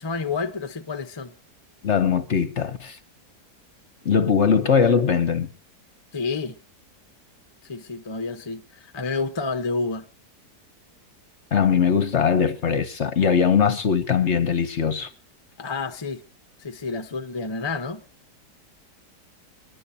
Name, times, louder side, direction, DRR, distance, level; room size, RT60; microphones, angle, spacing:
voice 1, 0.0-1.3 6.1-6.6 7.7-10.0 15.6-16.2 16.6-18.0, left 4 dB, 20° left, 0.8 m, -29 dB
voice 2, 1.8-3.0 4.0-5.5 11.5-15.1, left 6 dB, 50° left, 1.1 m, -21 dB
30.0 x 11.0 x 2.7 m
omnidirectional pair, 1.8 m